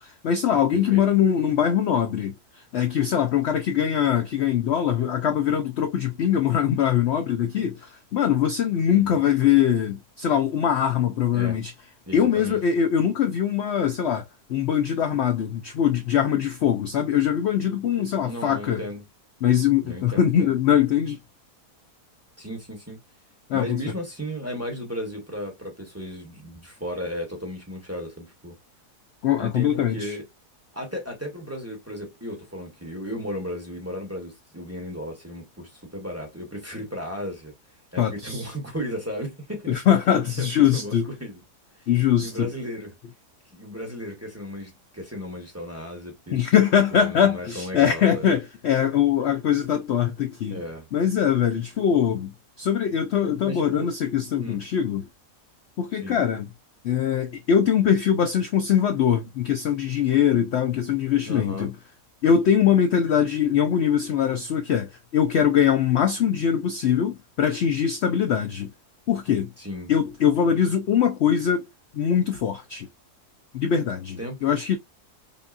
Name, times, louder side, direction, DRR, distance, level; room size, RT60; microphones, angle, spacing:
voice 1, 0.0-11.7 12.1-14.2 14.5-18.8 19.4-21.2 23.5-23.8 29.2-30.2 38.0-38.5 39.7-41.1 41.9-42.5 46.3-50.6 50.9-55.0 55.8-56.5 56.8-61.7 62.2-68.7 69.1-69.5 69.9-71.7 71.9-72.9 73.5-74.8, left 9 dB, 65° left, 0.7 m, -22 dB
voice 2, 0.7-1.0 8.9-9.2 11.3-11.6 12.1-12.6 18.2-19.0 19.8-20.5 22.4-23.0 23.5-28.6 29.4-30.3 30.7-37.5 37.9-39.8 40.4-41.4 41.8-41.9 42.2-43.0 43.5-46.4 46.9-48.3 50.5-50.9 53.4-53.9 54.4-54.6 56.0-56.2 61.3-61.7 69.6-69.9 74.2-74.5, equal, 10° right, 1.1 m, -35 dB
5.4 x 2.3 x 2.5 m
omnidirectional pair, 1.7 m